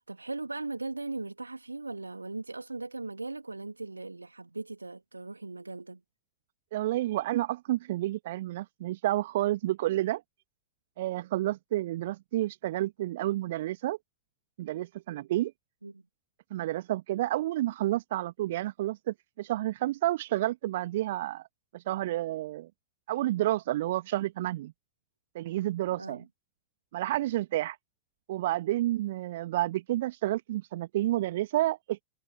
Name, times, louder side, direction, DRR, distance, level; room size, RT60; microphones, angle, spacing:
voice 1, 0.1-6.0 15.8-16.0 26.0-26.3, right 3 dB, 80° right, 3.0 m, -38 dB
voice 2, 6.7-10.2 11.0-14.0 14.6-15.5 16.5-21.5 21.7-22.7 23.1-24.7 25.3-26.2 26.9-27.8 28.3-32.0, right 15 dB, 55° right, 1.8 m, -30 dB
figure-of-eight pair, 90°, 0 cm